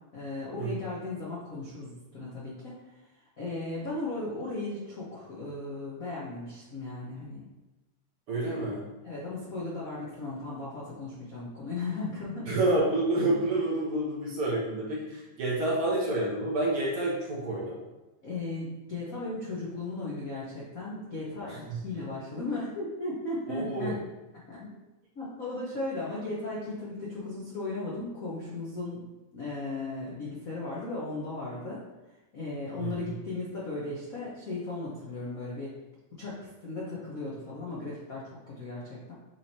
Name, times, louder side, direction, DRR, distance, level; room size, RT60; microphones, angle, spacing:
voice 1, 0.1-2.7 3.4-7.5 8.4-8.6 9.0-12.5 18.2-24.0 24.5-24.7 25.1-29.0 29.3-31.8 32.3-35.7 36.2-39.1, left 2 dB, 60° left, -7 dB, 0.9 m, -36 dB
voice 2, 8.3-8.8 12.5-17.8 21.5-21.8 23.5-24.0 32.8-33.0, right 2 dB, 55° right, -5 dB, 1.9 m, -29 dB
7.4 x 3.5 x 4.3 m, 1.1 s
omnidirectional pair, 3.5 m